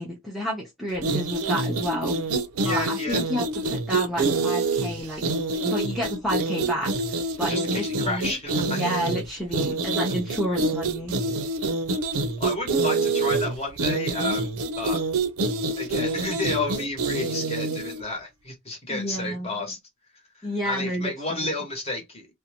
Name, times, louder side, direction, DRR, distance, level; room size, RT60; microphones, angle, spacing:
voice 1, 0.0-2.2 2.6-5.2 5.6-8.3 8.7-11.2 18.9-19.7 20.4-21.1, equal, ahead, 0.5 m, -30 dB
sound 1, 1.0-18.0, right 3 dB, 85° right, 0.5 m, -26 dB
voice 2, 2.6-3.2 7.5-8.8 12.4-15.0 15.8-19.8 20.4-22.3, left 2 dB, 30° left, 1.0 m, -31 dB
2.6 x 2.1 x 2.8 m
head